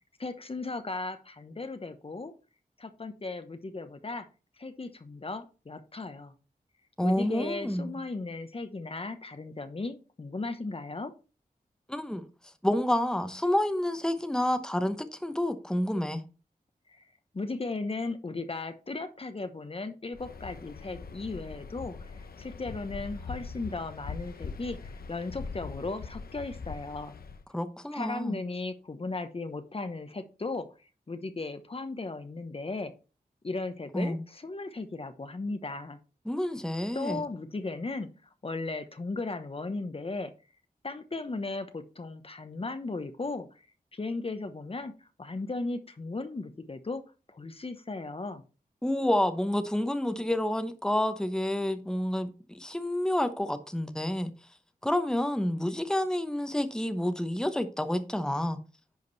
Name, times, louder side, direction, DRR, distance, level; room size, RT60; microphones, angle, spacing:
voice 1, 0.2-2.3 2.8-4.3 4.6-6.3 7.0-11.1 16.9-17.0 17.3-24.8 25.1-27.2 27.9-30.7 31.1-32.9 33.4-36.0 36.9-40.3 40.8-43.6 43.9-47.0 47.3-48.4, left 3 dB, 40° left, 1.0 m, -36 dB
voice 2, 7.0-8.0 11.9-12.2 12.6-16.2 27.5-28.4 33.9-34.2 36.3-37.2 48.8-54.3 54.8-58.6, left 1 dB, 5° left, 0.9 m, -29 dB
Waves surf, 20.1-27.4, left 5 dB, 85° left, 0.9 m, -42 dB
10.5 x 5.1 x 4.0 m
wide cardioid pair, 80°, 15 cm